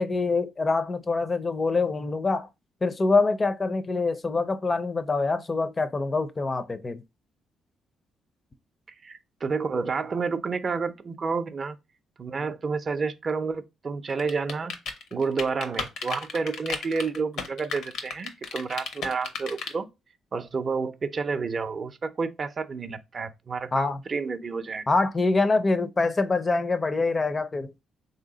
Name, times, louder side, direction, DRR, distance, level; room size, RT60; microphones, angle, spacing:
voice 1, 0.0-2.5 2.8-7.0 23.7-24.0 24.9-27.7, left 3 dB, 30° left, 0.4 m, -25 dB
voice 2, 9.0-11.8 12.2-14.8 15.1-19.9 20.3-24.8, right 4 dB, 40° right, 0.4 m, -30 dB
sound 1, 14.2-19.7, left 5 dB, 80° left, 0.8 m, -33 dB
3.4 x 2.7 x 3.8 m
cardioid pair, 90°, 0 cm